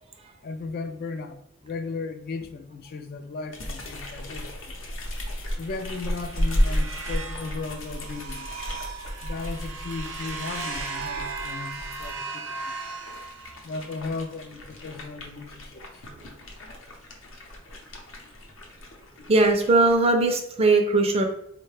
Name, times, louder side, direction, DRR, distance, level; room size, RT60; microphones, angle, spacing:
voice 1, 0.4-4.7 5.6-8.5 9.2-12.7 13.6-16.0 19.2-19.3, left 4 dB, 50° left, 8 dB, 0.3 m, -36 dB
sound 1, 3.5-12.1 12.7-20.0, equal, 75° left, 0.7 m, -33 dB
sound 2, 5.6-13.9, right 4 dB, 70° right, 0.6 m, -37 dB
voice 2, 19.3-21.2, right 3 dB, 30° right, 4 dB, 0.4 m, -20 dB
4.0 x 2.1 x 3.2 m, 0.74 s
head